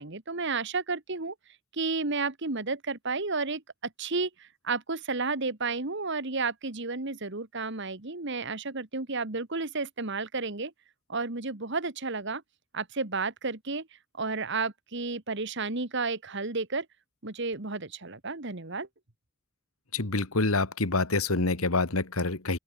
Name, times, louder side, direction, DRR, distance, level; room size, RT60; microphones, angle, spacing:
voice 1, 0.0-1.3 1.7-10.7 11.1-12.4 12.7-13.9 14.2-16.9 17.2-18.9, right 3 dB, 55° right, 1.9 m, -32 dB
voice 2, 19.9-22.6, left 3 dB, 85° left, 2.1 m, -27 dB
open air
head